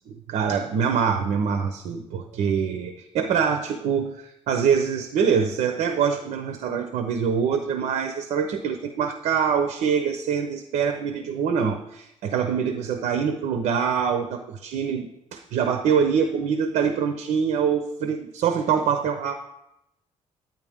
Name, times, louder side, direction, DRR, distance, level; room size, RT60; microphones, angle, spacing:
voice 1, 0.3-19.3, right 7 dB, 85° right, 6 dB, 0.9 m, -24 dB
10.5 x 9.3 x 3.6 m, 0.82 s
cardioid pair, 155°, 12 cm